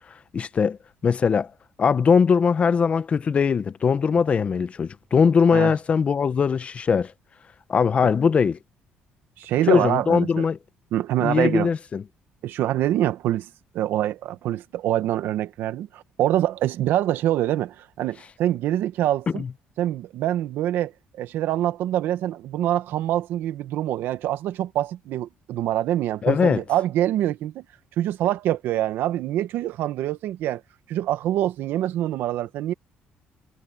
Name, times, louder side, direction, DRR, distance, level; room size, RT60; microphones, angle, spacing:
voice 1, 0.3-0.8 1.0-1.5 1.8-7.1 7.7-8.6 9.7-10.6 11.2-12.0 19.3-19.5 26.2-26.6, left 6 dB, 35° left, 0.7 m, -20 dB
voice 2, 9.4-10.5 10.9-11.7 12.4-13.5 13.7-19.4 19.8-20.9 21.2-27.6 28.0-30.6 30.9-32.7, right 13 dB, 80° right, 1.4 m, -25 dB
cardioid pair, 125°, 4 cm